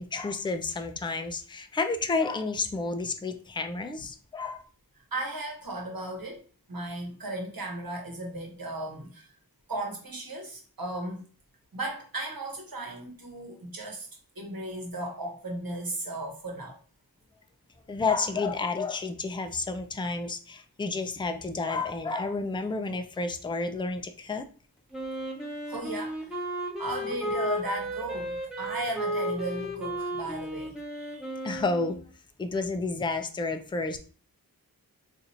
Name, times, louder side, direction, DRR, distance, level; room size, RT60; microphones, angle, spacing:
voice 1, 0.0-4.6 17.9-24.5 31.4-32.0 32.4-34.0, left 3 dB, 15° left, 0.4 m, -30 dB
voice 2, 5.1-6.4 6.7-9.3 9.7-11.3 11.7-14.1 14.4-16.8 25.7-26.4 26.8-31.3, right 2 dB, 70° right, 1.1 m, -36 dB
Wind instrument woodwind instrument, 24.9-32.0, equal, ahead, 0.9 m, -34 dB
2.8 x 2.5 x 4.2 m
wide cardioid pair, 65°, 37 cm